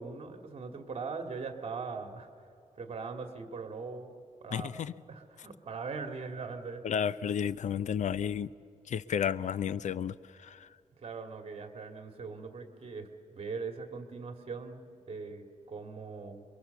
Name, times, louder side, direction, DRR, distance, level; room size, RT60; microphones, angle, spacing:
voice 1, 0.0-2.3 2.8-4.8 5.1-6.8 11.0-16.4, right 4 dB, 45° right, 2.2 m, -41 dB
voice 2, 4.5-4.9 6.8-8.5 8.9-10.7, left 8 dB, 65° left, 0.5 m, -32 dB
27.5 x 23.0 x 7.0 m
wide cardioid pair, 145°, 14 cm